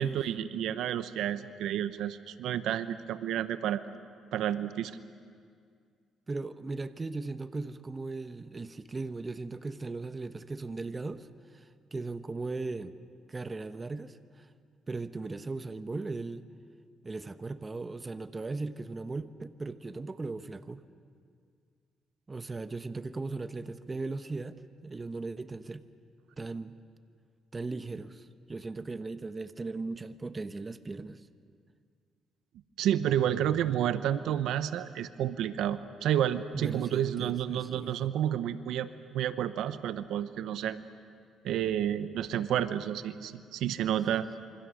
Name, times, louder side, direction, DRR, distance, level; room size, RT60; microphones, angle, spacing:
voice 1, 0.0-3.8 4.3-4.9 32.8-40.8 41.4-44.3, right 10 dB, 80° right, 12 dB, 0.8 m, -30 dB
voice 2, 6.3-12.9 13.3-14.5 14.9-16.4 17.0-20.8 22.3-25.8 26.4-26.8 27.5-31.2 36.5-38.1, right 3 dB, 25° right, 11 dB, 0.9 m, -38 dB
27.0 x 24.5 x 6.4 m, 2.2 s
cardioid pair, 100°, 0 cm